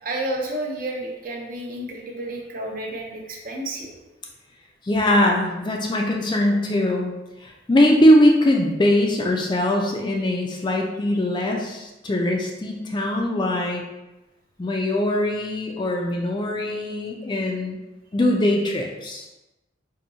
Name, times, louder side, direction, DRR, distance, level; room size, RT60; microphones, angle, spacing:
voice 1, 0.0-3.9, right 1 dB, 45° right, 1 dB, 0.5 m, -31 dB
voice 2, 4.8-7.1 7.4-13.8 14.6-17.8 18.1-19.3, left 1 dB, 25° left, 1 dB, 0.3 m, -21 dB
4.2 x 2.6 x 2.6 m, 1.0 s
head